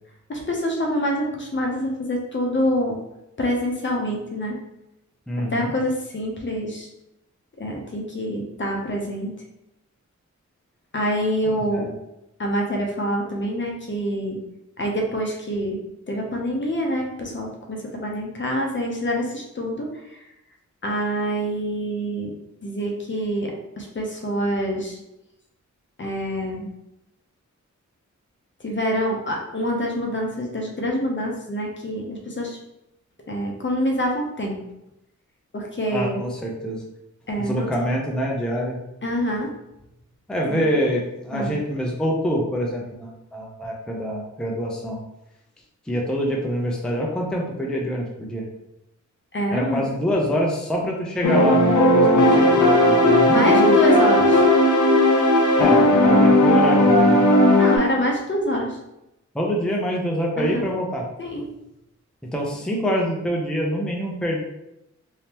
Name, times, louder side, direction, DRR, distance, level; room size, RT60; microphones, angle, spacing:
voice 1, 0.3-3.0 3.4-4.5 5.5-6.9 7.6-9.3 10.9-11.9 12.4-14.4 14.8-15.8 16.1-20.2 20.8-22.3 22.6-25.0 26.0-26.7 28.6-32.6 33.3-34.6 35.5-36.2 37.3-37.7 39.0-39.5 40.4-40.7 41.3-41.6 49.3-49.8 53.3-54.4 57.6-58.8 60.4-60.7 61.2-61.4, equal, 40° left, 0 dB, 0.7 m, -26 dB
voice 2, 5.3-5.7 11.4-11.9 35.9-36.8 37.4-38.8 40.3-45.0 45.9-48.4 49.5-53.8 55.6-57.2 59.3-61.0 62.3-64.4, equal, 5° left, -2 dB, 0.5 m, -25 dB
sound 1, 51.2-57.8, left 1 dB, 75° left, 0.7 m, -16 dB
3.4 x 2.7 x 2.9 m, 0.88 s
wide cardioid pair, 105°, 30 cm